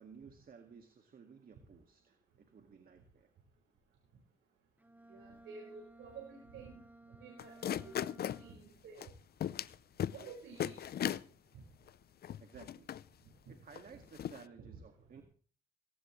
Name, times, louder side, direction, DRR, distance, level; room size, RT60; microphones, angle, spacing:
voice 1, 0.0-3.3 12.4-12.9 13.5-15.2, right 6 dB, 45° right, 5 dB, 2.0 m, -56 dB
Bowed string instrument, 4.8-8.9, right 1 dB, 10° right, 1.6 m, -58 dB
voice 2, 5.1-6.8 7.2-7.9 8.4-9.1 10.1-10.8 14.7-14.8, right 5 dB, 80° right, -2 dB, 5.3 m, -51 dB
sound 1, 7.4-8.4 9.0-9.1 9.4-9.7 10.0-10.3 10.6-11.2 11.9-12.0 12.2-13.0 13.8-13.9 14.2-14.4, left 10 dB, 50° left, 0.6 m, -37 dB
18.5 x 17.0 x 3.2 m, 0.43 s
cardioid pair, 90°, 20 cm